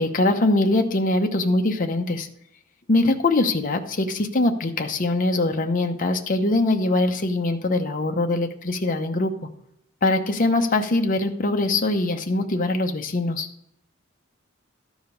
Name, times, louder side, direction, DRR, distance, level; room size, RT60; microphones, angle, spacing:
voice 1, 0.0-2.3 2.9-9.5 10.0-13.5, left 2 dB, 45° left, 5 dB, 0.8 m, -22 dB
12.5 x 5.1 x 5.1 m, 0.73 s
head